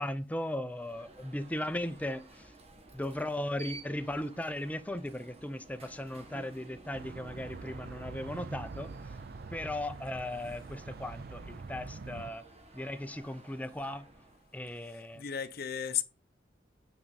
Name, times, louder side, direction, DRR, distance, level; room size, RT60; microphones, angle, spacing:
voice 1, 0.0-2.5 2.9-9.1 9.5-12.4 12.7-14.1 14.5-15.2, left 1 dB, 10° left, 0.5 m, -37 dB
Alarm, 0.7-14.6, right 2 dB, 35° right, 1.5 m, -54 dB
sound 1, 6.9-12.3, right 4 dB, 55° right, 0.5 m, -44 dB
voice 2, 14.8-16.0, left 9 dB, 55° left, 0.6 m, -35 dB
9.1 x 4.7 x 4.1 m
head